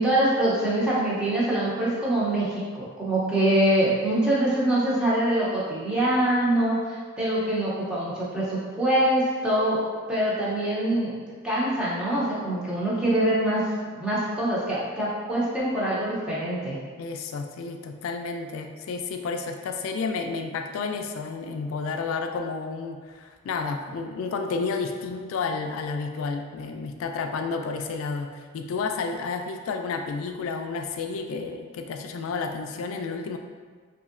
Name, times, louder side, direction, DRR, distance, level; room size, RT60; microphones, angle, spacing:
voice 1, 0.0-9.8 10.1-11.1 11.4-13.6 13.9-16.8, right 1 dB, 5° right, -8 dB, 0.6 m, -24 dB
voice 2, 17.0-33.4, left 4 dB, 85° left, 5 dB, 0.3 m, -31 dB
3.0 x 2.7 x 2.5 m, 1.5 s
head